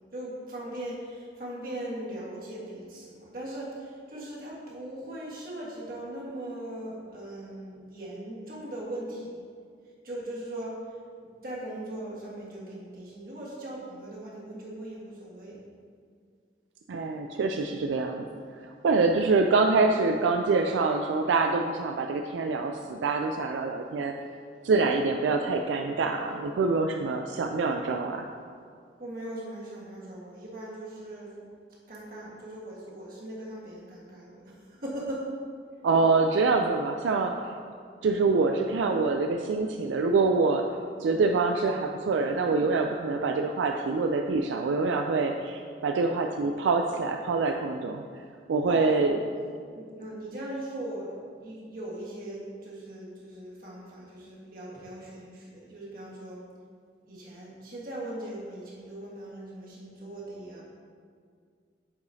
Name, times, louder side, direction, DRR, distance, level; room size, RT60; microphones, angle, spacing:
voice 1, 0.1-9.5 10.0-15.6 29.0-31.4 31.9-35.3 48.6-48.9 49.7-56.4 57.0-60.6, right 1 dB, 50° right, -5 dB, 1.5 m, -39 dB
voice 2, 16.9-18.3 18.6-24.1 24.6-28.3 35.8-37.5 38.0-40.7 41.0-48.0 48.5-49.2, right 3 dB, 85° right, 4 dB, 0.3 m, -25 dB
8.3 x 4.9 x 2.7 m, 2.1 s
head